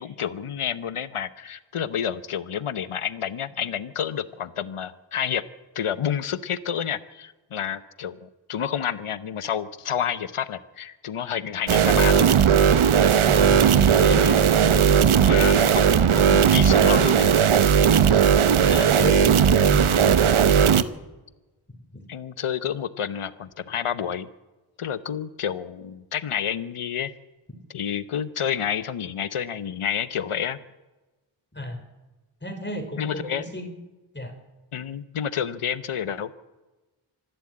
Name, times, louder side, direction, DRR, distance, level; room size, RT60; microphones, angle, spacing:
voice 1, 0.0-5.4 5.7-12.3 15.2-17.4 22.1-24.3 24.8-27.1 27.7-30.6 33.0-33.5 34.7-36.3, left 8 dB, 80° left, 14 dB, 1.0 m, -29 dB
sound 1, 11.7-20.8, right 7 dB, 75° right, 0.9 m, -17 dB
voice 2, 12.8-15.1 15.6-15.8 18.0-18.3 18.6-21.0 21.9-22.0 31.5-31.8 32.4-33.7 34.1-34.3, left 1 dB, 20° left, 6 dB, 3.7 m, -32 dB
25.5 x 11.5 x 8.7 m, 1.1 s
wide cardioid pair, 65°, 50 cm